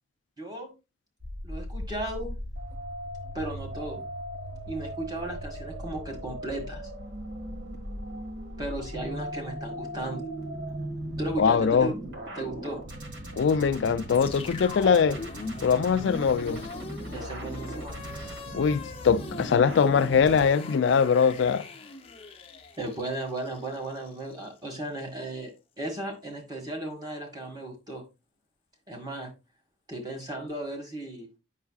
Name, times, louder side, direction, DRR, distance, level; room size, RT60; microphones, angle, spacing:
voice 1, 0.4-0.7 1.4-2.3 3.3-4.0 4.7-6.8 8.6-10.2 11.2-11.9 12.4-12.8 17.1-18.0 22.8-25.5 25.8-28.0 28.9-29.3 29.9-31.3, right 1 dB, 20° right, 1.6 m, -35 dB
sound 1, 1.2-20.5, right 1 dB, 65° right, 1.7 m, -38 dB
voice 2, 11.4-11.9 13.3-15.2 15.6-16.6 18.5-21.6, left 6 dB, 70° left, 0.3 m, -22 dB
sound 2, 14.1-24.3, left 3 dB, 30° left, 0.7 m, -40 dB
8.0 x 5.7 x 2.3 m
head